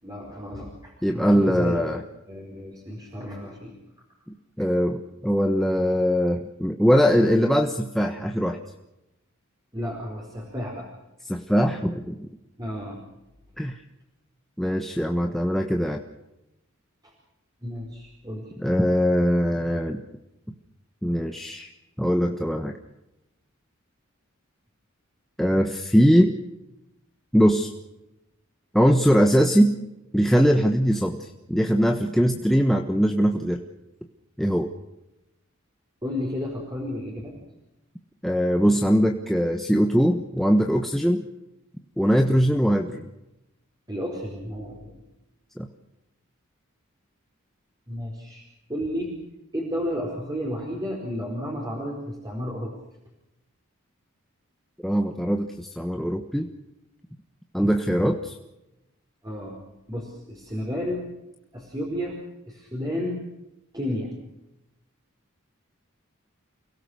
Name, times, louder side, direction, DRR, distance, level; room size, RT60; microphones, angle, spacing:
voice 1, 0.0-1.8 2.3-3.7 9.7-10.9 12.6-13.0 17.0-17.1 17.6-18.5 36.0-37.3 43.9-45.0 47.9-49.1 49.5-52.7 57.6-57.8 59.2-59.6 59.9-61.0 61.5-62.2 62.5-63.2 63.7-64.1, equal, 20° right, -1 dB, 4.7 m, -32 dB
voice 2, 1.0-2.0 4.6-8.6 11.3-12.3 13.6-13.8 14.6-16.0 18.6-20.0 21.0-21.7 22.0-22.7 25.4-26.3 27.3-27.7 28.7-29.8 30.1-33.6 34.4-34.7 38.2-41.2 42.0-43.1 45.6-45.7 54.8-56.5 57.5-58.3, equal, ahead, 3 dB, 1.3 m, -21 dB
29.5 x 17.5 x 6.5 m, 0.93 s
head